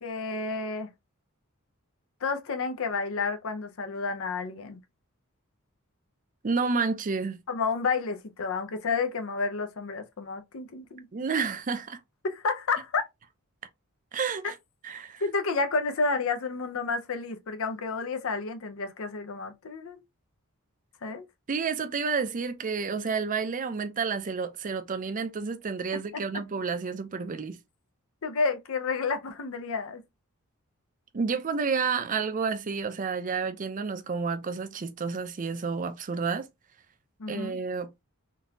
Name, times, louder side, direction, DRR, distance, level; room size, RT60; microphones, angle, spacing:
voice 1, 0.0-0.9 2.2-4.8 7.5-11.1 12.2-13.0 15.2-20.0 21.0-21.2 28.2-30.0 37.2-37.6, left 4 dB, 65° left, 0.6 m, -30 dB
voice 2, 6.4-7.4 11.1-12.0 14.1-14.6 14.8-15.2 21.5-27.6 31.1-36.5 37.3-37.9, right 5 dB, 40° right, 0.5 m, -30 dB
3.8 x 2.7 x 2.3 m
head